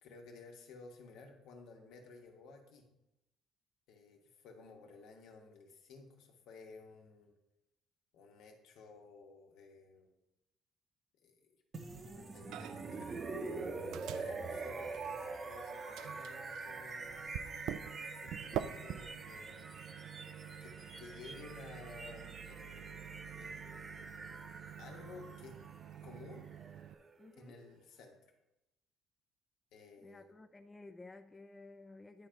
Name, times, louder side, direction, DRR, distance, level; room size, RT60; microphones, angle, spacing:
voice 1, 0.0-2.8 3.9-7.3 8.1-10.1 11.2-11.6 12.1-13.7 14.1-17.3 17.8-19.7 20.6-24.2 24.8-25.6 26.0-26.5 27.4-28.2 29.7-30.3, left 3 dB, 80° left, 2 dB, 1.3 m, -55 dB
sound 1, 11.7-27.6, right 3 dB, 30° right, 0.7 m, -45 dB
Microwave oven, 12.5-13.0 13.3-15.5 15.9-26.9, right 11 dB, 75° right, 0.3 m, -47 dB
voice 2, 27.2-27.5 30.0-32.3, left 2 dB, 15° left, 7 dB, 0.3 m, -54 dB
9.8 x 3.8 x 4.5 m, 0.91 s
cardioid pair, 135°, 0 cm